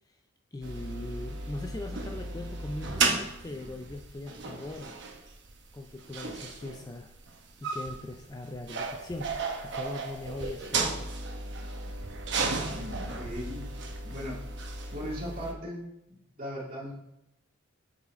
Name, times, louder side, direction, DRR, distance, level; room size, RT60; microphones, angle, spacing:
voice 1, 0.5-5.0 5.7-7.1 7.6-9.3 9.6-11.1, left 2 dB, 15° left, 4 dB, 0.3 m, -40 dB
sound 1, 0.6-15.5, right 3 dB, 60° right, 0.9 m, -34 dB
voice 2, 12.6-13.7 14.0-14.4 14.9-16.9, equal, 40° right, -3 dB, 2.0 m, -39 dB
7.1 x 4.1 x 4.1 m, 0.84 s
head